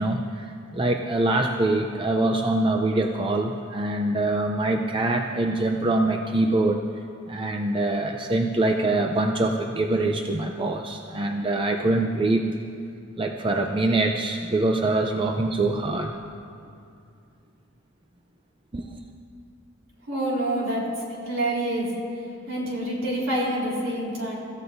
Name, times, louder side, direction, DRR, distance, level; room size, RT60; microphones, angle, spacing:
voice 1, 0.0-6.8 7.3-12.4 13.2-16.2 18.7-19.0, right 2 dB, 25° right, 3 dB, 0.5 m, -24 dB
voice 2, 20.1-20.8 21.3-21.9 22.5-24.3, right 1 dB, 70° right, -4 dB, 3.9 m, -27 dB
24.0 x 14.5 x 2.7 m, 2.4 s
head